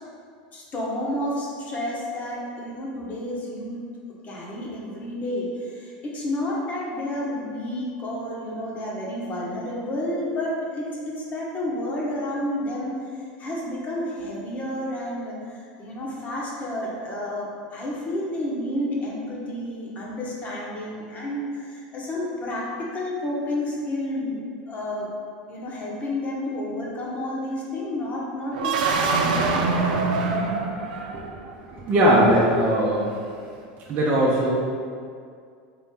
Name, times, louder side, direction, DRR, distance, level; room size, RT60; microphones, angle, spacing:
voice 1, 0.5-3.8 4.2-13.0 13.4-24.4 24.7-25.1 25.5-29.4, left 1 dB, 35° left, -4 dB, 1.1 m, -30 dB
sound 1, 28.5-31.5, right 4 dB, 80° right, 0.4 m, -24 dB
voice 2, 31.7-33.2 33.9-34.5, equal, 40° right, -6 dB, 0.7 m, -19 dB
4.2 x 2.8 x 3.7 m, 2.2 s
supercardioid pair, 110°, 4 cm